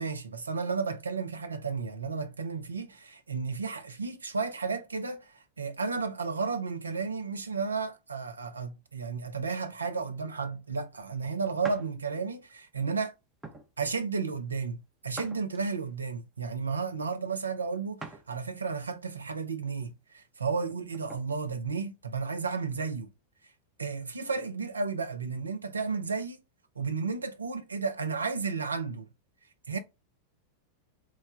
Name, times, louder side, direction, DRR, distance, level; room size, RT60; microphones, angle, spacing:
voice 1, 0.0-13.1 13.8-23.1 23.8-26.4 26.8-29.1 29.7-29.8, right 5 dB, 75° right, 0.5 m, -33 dB
sound 1, 11.6-11.9 12.5-12.7 13.4-13.7 15.1-15.9 18.0-18.3 18.8-18.9 20.6-21.3, right 2 dB, 10° right, 0.6 m, -44 dB
3.2 x 2.1 x 3.6 m
figure-of-eight pair, 90°, 0 cm